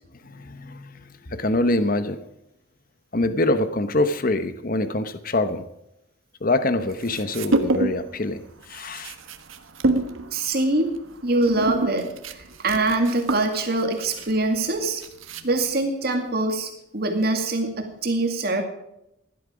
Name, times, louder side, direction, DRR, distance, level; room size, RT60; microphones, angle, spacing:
voice 1, 0.2-2.2 3.1-5.6 6.4-9.1, left 2 dB, 45° left, 11 dB, 1.0 m, -25 dB
sound 1, 6.9-8.1 8.4-15.8, right 2 dB, 75° right, 1.4 m, -28 dB
voice 2, 10.3-10.9 11.2-15.0 15.4-18.6, right 2 dB, 50° right, 4 dB, 2.2 m, -24 dB
16.5 x 12.0 x 5.1 m, 0.83 s
head